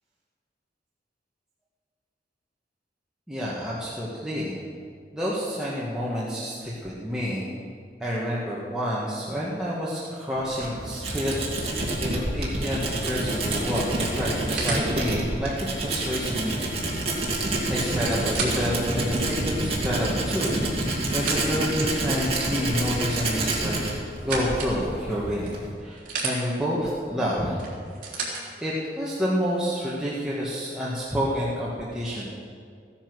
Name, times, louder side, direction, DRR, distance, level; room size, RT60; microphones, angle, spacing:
voice 1, 3.3-4.5 5.1-7.5 8.0-11.3 11.6-17.1 17.7-20.6 21.1-27.6 28.6-32.3, equal, 5° right, -8 dB, 1.7 m, -29 dB
Tools, 10.3-25.7, right 1 dB, 35° right, 2.6 m, -28 dB
sound 1, 12.8-14.9 16.9-17.0 17.3-17.4 17.9-18.7 19.3-19.4 20.2-21.8 23.4-24.8 25.4-26.4 27.6-28.4 29.4-29.5, right 4 dB, 50° right, 3.5 m, -34 dB
15.5 x 10.5 x 6.3 m, 2.2 s
head